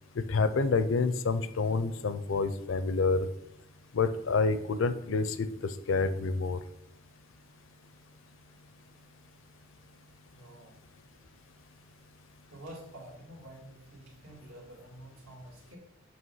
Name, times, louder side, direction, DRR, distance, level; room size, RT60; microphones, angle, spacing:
voice 1, 0.3-3.3 3.9-5.5 5.9-6.6, left 4 dB, 70° left, 12 dB, 0.5 m, -28 dB
voice 2, 10.3-10.7 12.5-15.8, right 1 dB, 75° right, -4 dB, 2.6 m, -48 dB
7.9 x 2.9 x 5.6 m, 0.82 s
head